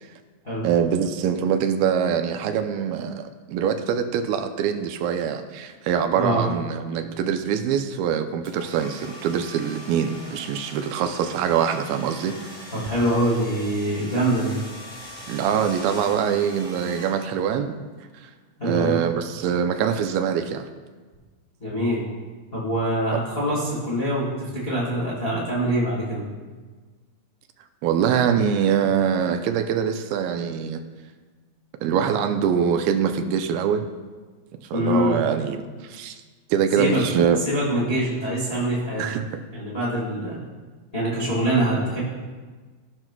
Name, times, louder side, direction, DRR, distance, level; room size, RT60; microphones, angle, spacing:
voice 1, 0.6-12.4 15.3-17.8 18.2-18.3 18.6-20.7 23.1-23.2 27.8-30.8 31.8-33.9 34.7-36.2 36.5-37.4 39.0-39.4, right 8 dB, 80° right, 7 dB, 2.3 m, -24 dB
sound 1, 8.4-17.6, equal, ahead, 1.2 m, -41 dB
voice 2, 12.7-14.5 18.6-19.0 21.6-22.0 22.5-26.2 34.7-35.2 36.7-37.0 37.4-39.0 39.5-40.4 40.9-42.0, right 1 dB, 80° left, -7 dB, 0.5 m, -24 dB
16.0 x 6.0 x 2.2 m, 1.4 s
omnidirectional pair, 4.4 m